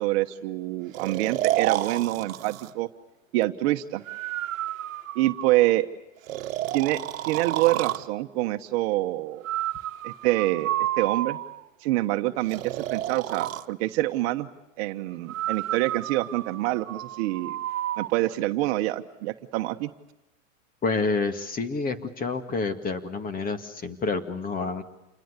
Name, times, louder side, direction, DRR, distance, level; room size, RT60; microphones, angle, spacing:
voice 1, 0.0-2.9 3.3-4.0 5.1-5.9 6.7-7.0 7.3-9.4 10.0-10.7 11.0-11.4 11.8-14.5 14.8-17.6 18.0-19.9, right 17 dB, 50° right, 8 dB, 1.3 m, -26 dB
Breathing, 0.9-2.7 4.1-5.7 6.3-8.1 9.4-11.7 12.5-13.7 15.3-18.1, right 13 dB, 75° right, 1.3 m, -31 dB
voice 2, 20.8-24.8, left 4 dB, 20° left, 10 dB, 2.2 m, -28 dB
28.5 x 21.5 x 8.3 m, 0.93 s
hypercardioid pair, 130°, 40 cm